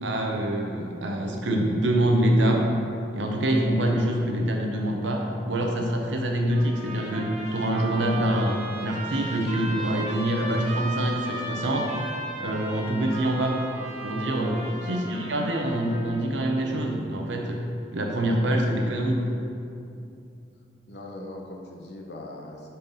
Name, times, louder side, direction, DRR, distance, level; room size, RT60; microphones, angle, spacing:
voice 1, 0.0-2.7 3.1-11.9 12.4-13.6 14.0-17.6 17.9-19.3, right 1 dB, 75° right, 2 dB, 0.8 m, -25 dB
Trumpet, 6.5-16.2, right 2 dB, 40° right, 1.0 m, -36 dB
voice 2, 14.7-15.0 20.9-22.7, left 1 dB, 60° left, 0 dB, 0.8 m, -40 dB
5.4 x 4.5 x 5.4 m, 2.6 s
head